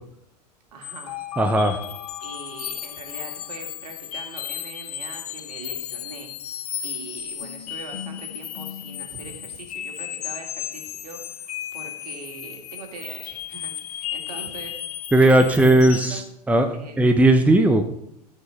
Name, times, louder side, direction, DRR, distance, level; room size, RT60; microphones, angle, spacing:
voice 1, 0.7-1.4 2.2-6.4 6.8-15.1 15.3-16.2 16.7-17.0, right 4 dB, 65° right, 3 dB, 2.6 m, -42 dB
sound 1, 0.8-16.3, left 11 dB, 60° left, 0.9 m, -34 dB
voice 2, 1.4-1.8 15.1-16.2 16.5-17.9, right 1 dB, 5° right, 7 dB, 0.9 m, -17 dB
13.5 x 5.7 x 5.6 m, 0.73 s
figure-of-eight pair, 85°, 21 cm